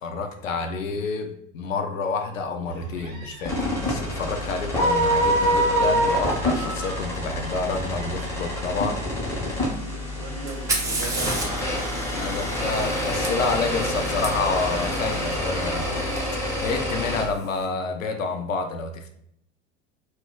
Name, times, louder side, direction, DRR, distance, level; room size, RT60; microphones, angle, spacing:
voice 1, 0.0-8.9 12.1-16.2 16.6-19.1, left 4 dB, 75° left, 5 dB, 0.5 m, -29 dB
sound 1, 2.6-8.9, right 3 dB, 80° right, 0.9 m, -40 dB
sound 2, 3.5-17.2, equal, 5° left, 0.8 m, -26 dB
voice 2, 8.8-9.1 9.6-11.6, right 3 dB, 40° right, 1 dB, 0.7 m, -38 dB
Fire, 10.5-14.3 16.2-16.3 17.1-17.5, right 2 dB, 10° right, 0.3 m, -31 dB
2.1 x 2.1 x 3.6 m, 0.73 s
figure-of-eight pair, 75°, 39 cm